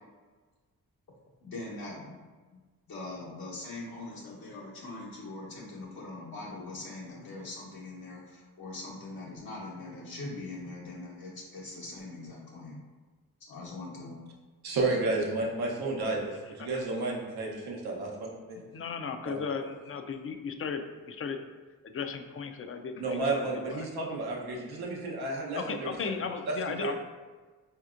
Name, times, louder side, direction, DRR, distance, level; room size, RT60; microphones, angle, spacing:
voice 1, 1.4-12.8 13.4-14.2, left 2 dB, 75° left, -5 dB, 1.1 m, -42 dB
voice 2, 14.6-18.3 19.2-19.4 23.0-25.9 26.5-26.9, right 2 dB, 85° right, -1 dB, 0.8 m, -31 dB
voice 3, 18.7-21.4 21.8-23.9 25.6-26.9, left 5 dB, 35° left, 7 dB, 0.4 m, -36 dB
4.1 x 2.8 x 2.4 m, 1.4 s
supercardioid pair, 45°, 37 cm